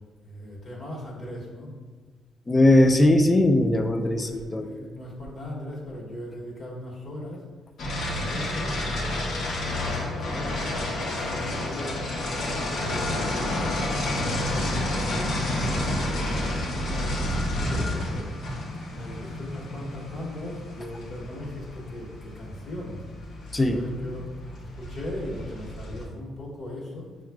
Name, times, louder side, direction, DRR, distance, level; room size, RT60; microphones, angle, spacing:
voice 1, 0.2-1.7 4.0-7.4 8.1-9.2 9.5-12.1 12.8-18.3 18.9-23.0 23.6-27.1, left 1 dB, 45° left, -4 dB, 1.3 m, -38 dB
voice 2, 2.5-4.7 23.5-23.8, left 1 dB, 20° left, 7 dB, 0.3 m, -19 dB
sound 1, 7.8-26.0, left 1 dB, 70° left, 0.8 m, -30 dB
5.8 x 2.4 x 2.2 m, 1.4 s
cardioid pair, 90°, 0 cm